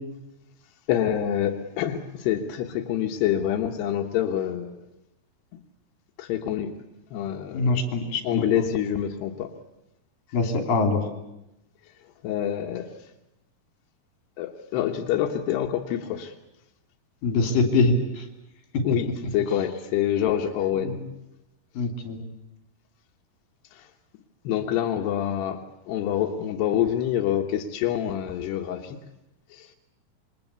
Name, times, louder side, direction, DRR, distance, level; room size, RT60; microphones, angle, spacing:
voice 1, 0.9-4.8 6.2-6.7 7.1-7.8 8.2-9.5 12.2-12.9 14.4-16.3 18.8-21.0 23.7-23.9 24.4-25.6 25.9-29.0 29.5-29.7, left 10 dB, 90° left, 3 dB, 3.4 m, -26 dB
voice 2, 7.5-8.5 10.3-11.1 17.2-18.3 20.8-21.1 21.8-22.2, left 3 dB, 60° left, 5 dB, 4.4 m, -24 dB
27.5 x 23.0 x 8.2 m, 0.91 s
omnidirectional pair, 4.6 m